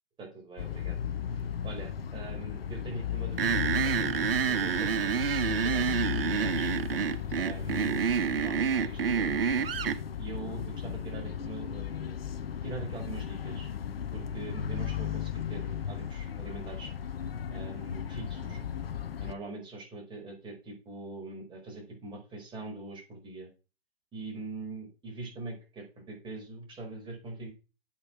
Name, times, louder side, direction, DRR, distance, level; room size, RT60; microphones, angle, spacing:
voice 1, 0.2-1.0 1.3-6.7 7.3-8.0 8.3-9.5 10.2-12.2 12.6-13.7 14.1-16.9 17.5-18.6 19.2-23.5 24.1-27.5, right 2 dB, 15° right, 0 dB, 5.1 m, -43 dB
sound 1, 0.6-19.3, left 8 dB, 70° left, 1.0 m, -36 dB
sound 2, 3.4-10.0, right 7 dB, 70° right, 1.2 m, -28 dB
8.8 x 7.8 x 5.9 m, 0.33 s
hypercardioid pair, 130°, 30 cm